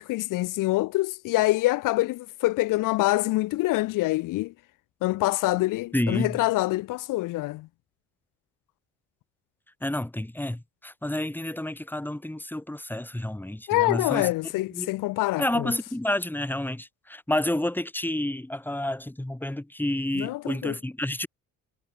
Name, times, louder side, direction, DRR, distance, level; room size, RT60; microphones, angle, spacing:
voice 1, 0.0-4.5 5.0-7.7 13.7-15.7 20.1-20.8, left 19 dB, 80° left, 0.7 m, -25 dB
voice 2, 5.9-6.4 9.8-14.3 14.7-14.9 15.4-21.3, left 1 dB, 5° left, 2.3 m, -29 dB
cardioid pair, 80°, 32 cm